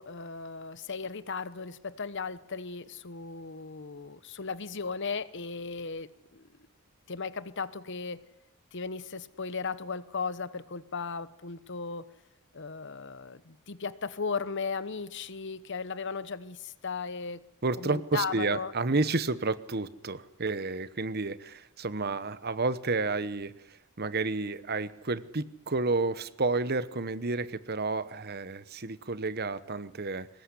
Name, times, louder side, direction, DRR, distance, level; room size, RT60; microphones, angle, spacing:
voice 1, 0.0-6.5 7.1-8.2 8.7-12.1 12.5-17.4 17.8-18.7, left 5 dB, 55° left, 15 dB, 1.0 m, -36 dB
voice 2, 17.6-30.3, right 3 dB, 45° right, 14 dB, 1.1 m, -31 dB
23.5 x 20.0 x 10.0 m, 0.88 s
head